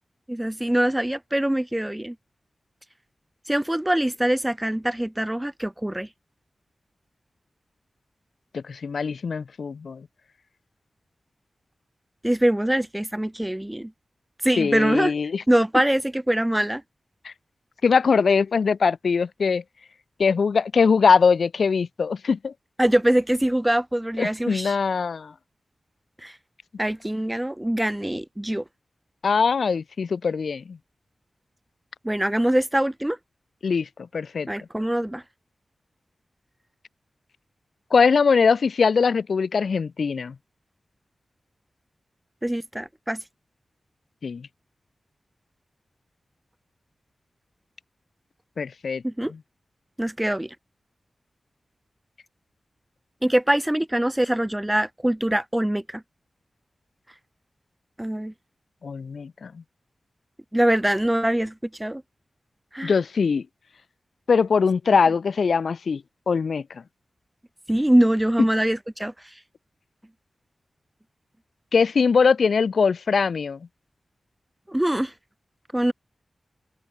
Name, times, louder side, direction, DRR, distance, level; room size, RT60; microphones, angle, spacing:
voice 1, 0.3-2.2 3.5-6.1 12.2-13.9 14.4-15.1 15.5-16.8 22.8-24.8 26.2-26.3 26.8-28.6 32.0-33.2 34.5-35.2 42.4-43.2 49.0-49.3 50.0-50.5 53.2-56.0 58.0-58.3 60.5-61.5 61.8-62.0 62.7-62.9 67.7-69.1 74.7-75.1 75.7-75.9, right 1 dB, 10° right, 0.4 m, -23 dB
voice 2, 8.5-10.0 14.6-15.4 17.2-17.3 17.8-19.6 20.2-22.5 24.2-25.3 29.2-30.8 33.6-33.9 34.1-34.5 37.9-40.3 44.2-44.4 48.6-49.0 58.8-59.5 62.8-63.4 64.3-66.0 66.3-66.6 71.7-73.6, left 5 dB, 80° left, 0.3 m, -21 dB
open air
wide cardioid pair, 65°, 0 cm